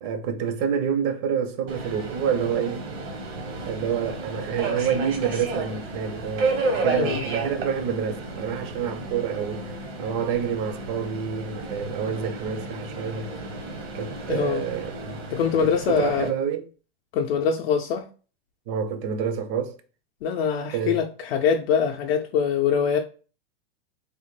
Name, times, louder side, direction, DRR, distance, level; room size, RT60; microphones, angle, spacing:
voice 1, 0.0-2.8 3.6-9.7 10.0-13.3 13.9-15.2 15.6-16.6 18.7-19.8 20.7-21.0, right 7 dB, 40° right, 0.4 m, -28 dB
Subway metro underground, 1.7-16.3, right 3 dB, 75° right, 1.1 m, -32 dB
voice 2, 14.3-14.6 15.3-16.3 17.1-18.1 20.2-23.0, left 7 dB, 70° left, 0.5 m, -23 dB
3.3 x 2.1 x 3.1 m
supercardioid pair, 145°, 31 cm